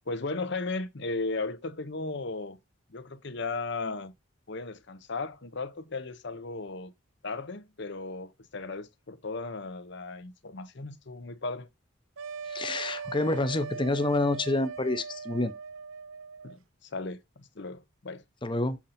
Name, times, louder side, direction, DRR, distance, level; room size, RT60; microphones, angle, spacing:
voice 1, 0.1-2.6 2.9-4.1 4.5-6.9 7.2-11.7 16.4-18.2, left 3 dB, 60° left, 0.9 m, -36 dB
sound 1, 12.2-16.6, right 6 dB, 85° right, 0.5 m, -40 dB
voice 2, 12.5-15.5 18.4-18.8, left 2 dB, 25° left, 0.7 m, -28 dB
7.2 x 3.9 x 4.2 m
head